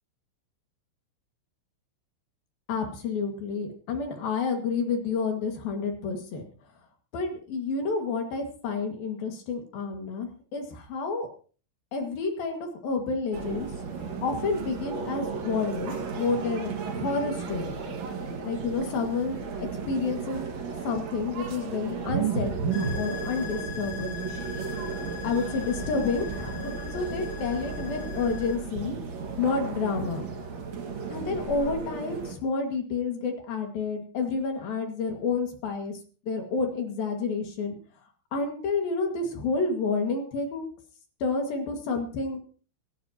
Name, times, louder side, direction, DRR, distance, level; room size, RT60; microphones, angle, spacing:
voice 1, 2.7-6.4 7.1-11.3 11.9-13.7 14.2-17.7 18.4-20.5 20.8-24.2 25.2-29.0 29.4-30.2 31.1-35.9 36.3-37.8 38.3-40.7 41.2-42.4, left 4 dB, 55° left, 4 dB, 3.2 m, -29 dB
sound 1, 13.3-32.3, right 5 dB, 60° right, 1.8 m, -34 dB
sound 2, 22.7-28.6, left 7 dB, 75° left, 4.9 m, -40 dB
25.5 x 12.5 x 2.9 m, 0.39 s
omnidirectional pair, 5.9 m